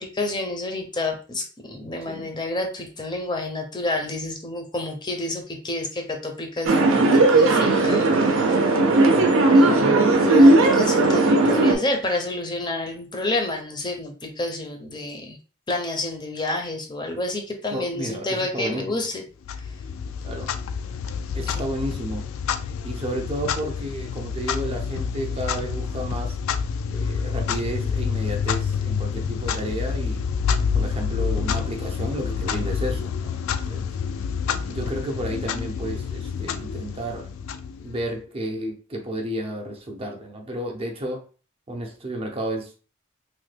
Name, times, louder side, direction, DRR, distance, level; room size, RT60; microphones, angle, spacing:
voice 1, 0.0-8.6 9.5-9.7 10.2-15.4 15.7-19.1 21.5-21.7, left 2 dB, 20° left, 3 dB, 0.5 m, -29 dB
sound 1, 6.7-11.8, right 2 dB, 80° right, 0.5 m, -17 dB
voice 2, 8.9-9.3 9.7-10.1 17.7-19.1 20.2-20.5 21.3-22.3 22.8-26.3 26.9-30.2 30.7-33.3 33.7-33.9 34.7-37.3 37.8-41.2 41.7-42.7, right 1 dB, 30° right, 2 dB, 0.5 m, -32 dB
Clock, 19.4-38.2, left 6 dB, 85° left, 0.3 m, -28 dB
3.1 x 2.2 x 3.2 m, 0.38 s
head